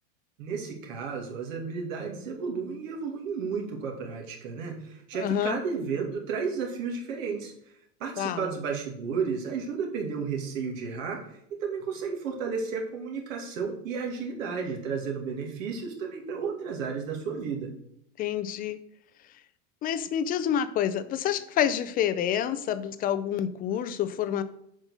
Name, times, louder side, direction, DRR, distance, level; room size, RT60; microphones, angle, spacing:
voice 1, 0.4-7.5 8.0-17.7, right 5 dB, 75° right, 0 dB, 2.4 m, -33 dB
voice 2, 5.2-5.6 8.2-8.4 18.2-18.8 19.8-24.4, left 9 dB, 25° left, 12 dB, 0.4 m, -28 dB
7.3 x 5.3 x 6.3 m, 0.72 s
supercardioid pair, 145°, 40 cm